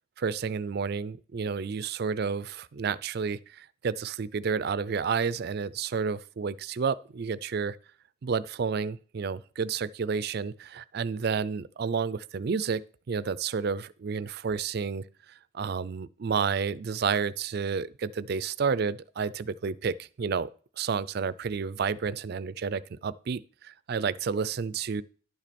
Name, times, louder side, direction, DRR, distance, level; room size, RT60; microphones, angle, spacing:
voice 1, 0.2-7.8 8.2-12.8 13.1-15.0 15.5-20.5 20.8-25.0, right 5 dB, 50° right, 0.4 m, -30 dB
11.0 x 6.1 x 4.2 m
head